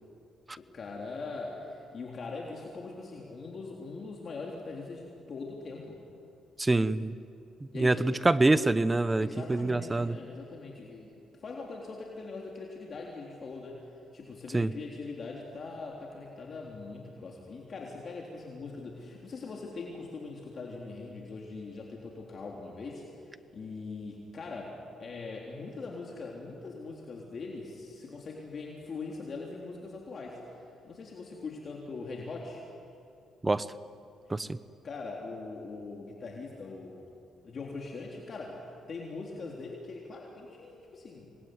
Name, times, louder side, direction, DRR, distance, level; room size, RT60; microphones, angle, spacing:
voice 1, 0.7-6.0 7.7-8.2 9.2-11.1 11.4-13.8 14.1-30.4 30.8-32.6 34.8-37.0 37.4-41.3, left 3 dB, 45° left, -1 dB, 3.7 m, -41 dB
voice 2, 6.6-7.2 7.7-10.2 14.5-14.7 33.4-33.6 34.3-34.6, right 2 dB, 20° right, 15 dB, 0.9 m, -25 dB
26.5 x 21.0 x 9.7 m, 2.6 s
cardioid pair, 90°, 0 cm